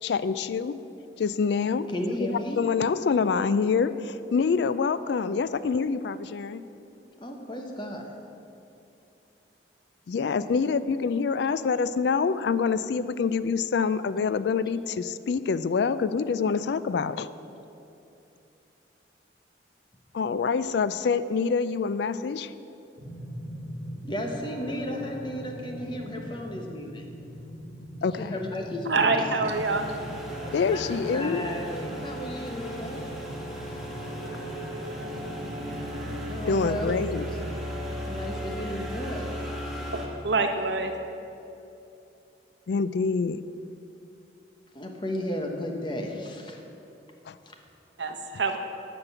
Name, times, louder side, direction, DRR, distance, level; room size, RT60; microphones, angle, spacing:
voice 1, 0.0-0.8 1.2-1.9 2.2-6.6 10.1-17.3 20.1-22.5 28.0-28.4 30.5-31.4 36.5-37.2 42.7-43.4 47.3-47.4, left 5 dB, 65° left, 14 dB, 0.3 m, -26 dB
voice 2, 1.9-2.6 7.2-8.0 24.0-27.0 28.2-29.3 30.7-33.0 36.2-36.9 38.1-39.3 44.7-46.6 47.5-47.6, left 1 dB, 25° left, 2 dB, 1.1 m, -34 dB
sound 1, 23.0-37.8, equal, 60° right, 2.6 m, -41 dB
voice 3, 28.9-29.9 39.9-40.9 48.0-48.6, right 3 dB, 75° right, 5 dB, 1.0 m, -26 dB
sound 2, 29.5-40.1, equal, ahead, 1.5 m, -36 dB
12.5 x 5.3 x 8.2 m, 2.8 s
head